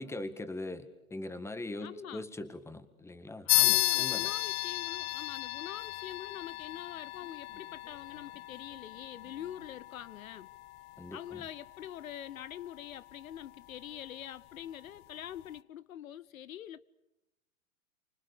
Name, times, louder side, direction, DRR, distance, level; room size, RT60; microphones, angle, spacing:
voice 1, 0.0-4.3 11.0-11.5, left 2 dB, 5° left, 1.8 m, -41 dB
voice 2, 1.8-2.2 3.4-10.5 11.1-16.9, left 11 dB, 75° left, 0.9 m, -45 dB
sound 1, 3.5-13.4, left 19 dB, 40° left, 0.9 m, -34 dB
sound 2, 4.1-10.2, left 1 dB, 90° left, 7.7 m, -65 dB
28.5 x 25.5 x 6.7 m
hypercardioid pair, 115°, 41 cm